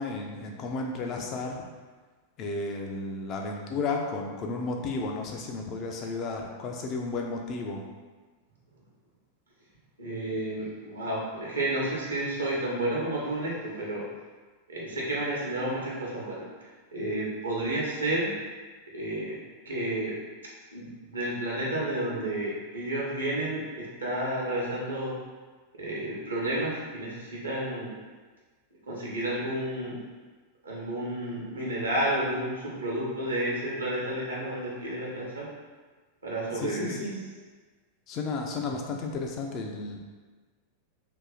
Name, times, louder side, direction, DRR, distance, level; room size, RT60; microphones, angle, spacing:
voice 1, 0.0-1.6 2.4-7.8 36.5-37.2 38.1-40.0, left 3 dB, 35° left, 1 dB, 0.5 m, -33 dB
voice 2, 10.0-14.0 14.7-16.5 16.9-18.3 18.9-20.1 20.7-25.2 25.8-27.9 28.9-30.0 30.6-35.5 36.2-36.9, right 1 dB, 75° right, -4 dB, 1.0 m, -31 dB
2.9 x 2.7 x 3.8 m, 1.4 s
figure-of-eight pair, 90°, 0 cm